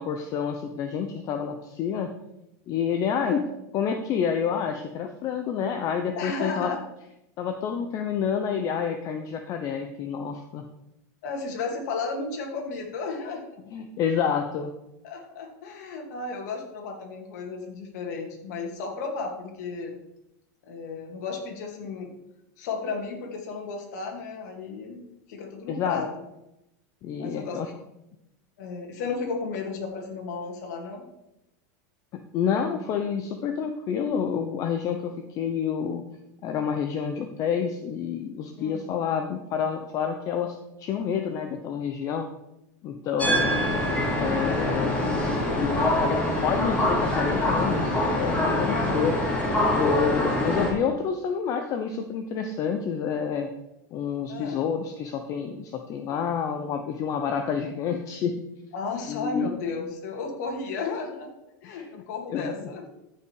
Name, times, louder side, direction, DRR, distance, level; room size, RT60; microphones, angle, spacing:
voice 1, 0.0-2.1 2.7-3.4 3.7-6.7 7.4-10.6 13.7-14.7 25.7-26.1 27.0-27.7 32.1-36.0 36.4-42.3 42.8-43.5 44.2-49.2 49.7-53.5 53.9-58.4 59.1-59.5 61.6-61.9 62.3-62.7, left 7 dB, 35° left, 6 dB, 0.8 m, -28 dB
voice 2, 6.2-6.8 11.2-13.6 15.0-20.0 20.6-22.1 22.6-26.1 27.2-27.6 28.6-31.0 38.6-38.9 43.2-43.9 48.5-49.0 50.0-50.2 54.3-54.6 58.7-61.3 61.6-62.8, left 4 dB, 65° left, 1 dB, 2.5 m, -34 dB
sound 1, 43.2-50.7, left 1 dB, 10° left, 2.7 m, -24 dB
14.0 x 5.8 x 4.8 m, 0.88 s
supercardioid pair, 145°, 10 cm